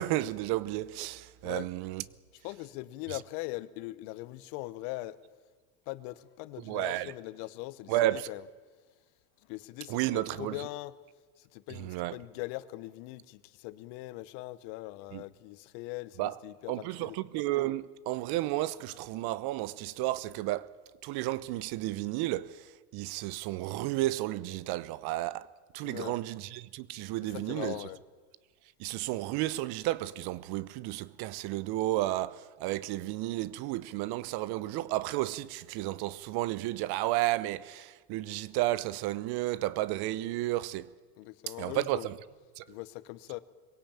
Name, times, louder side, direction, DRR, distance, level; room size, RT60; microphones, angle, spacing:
voice 1, 0.0-2.0 6.6-7.1 7.9-8.3 9.9-10.6 11.8-12.2 15.1-15.2 16.2-16.4 16.7-20.7 21.0-25.5 25.7-27.8 28.8-40.9 41.6-42.2 42.6-42.7, right 16 dB, 55° right, 0.9 m, -32 dB
voice 2, 2.4-5.2 5.9-8.4 9.4-10.9 11.4-17.2 25.8-26.2 27.2-28.0 41.2-42.1 42.7-43.4, left 19 dB, 65° left, 1.2 m, -41 dB
21.5 x 17.0 x 8.8 m
supercardioid pair, 110°, 45 cm